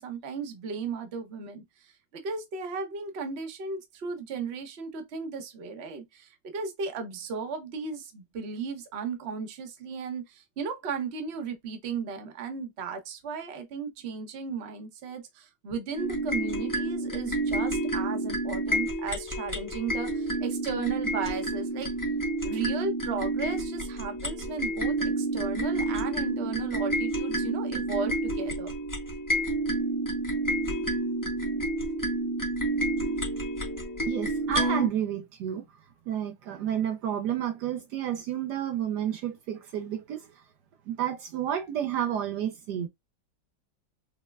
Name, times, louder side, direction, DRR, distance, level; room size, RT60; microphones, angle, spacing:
voice 1, 0.0-1.6 2.1-21.9 22.4-28.7, right 5 dB, 45° right, 0.9 m, -35 dB
sound 1, 16.0-34.9, right 1 dB, 15° left, 0.7 m, -29 dB
voice 2, 34.1-35.7 36.1-40.4 40.9-42.9, right 10 dB, 70° right, 1.2 m, -31 dB
5.3 x 2.1 x 2.3 m
omnidirectional pair, 2.0 m